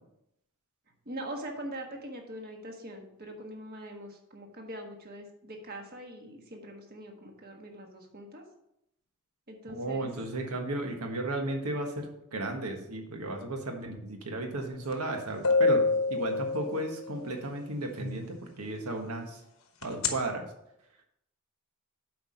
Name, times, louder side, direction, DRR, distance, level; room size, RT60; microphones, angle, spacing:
voice 1, 1.1-8.4 9.5-10.1, right 1 dB, 45° right, 2 dB, 1.4 m, -42 dB
voice 2, 9.7-19.4 19.8-20.5, right 2 dB, 90° right, 3 dB, 1.5 m, -34 dB
sound 1, 14.9-15.0 15.4-17.2 19.8-20.1, left 3 dB, 65° left, 1.0 m, -25 dB
7.9 x 4.8 x 5.6 m, 0.79 s
head